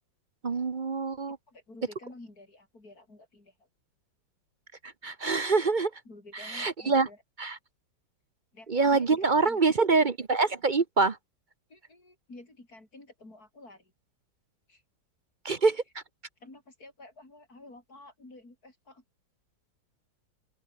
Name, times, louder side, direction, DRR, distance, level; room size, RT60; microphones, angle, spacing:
voice 1, 0.4-1.4 5.0-5.9 6.3-7.1 7.4-7.6 8.7-11.2 15.4-16.0, right 4 dB, 40° right, 0.7 m, -25 dB
voice 2, 1.5-3.7 6.0-7.2 8.5-9.8 11.7-13.9 14.7-14.8 16.4-19.0, left 2 dB, 50° left, 6.7 m, -50 dB
open air
omnidirectional pair, 2.1 m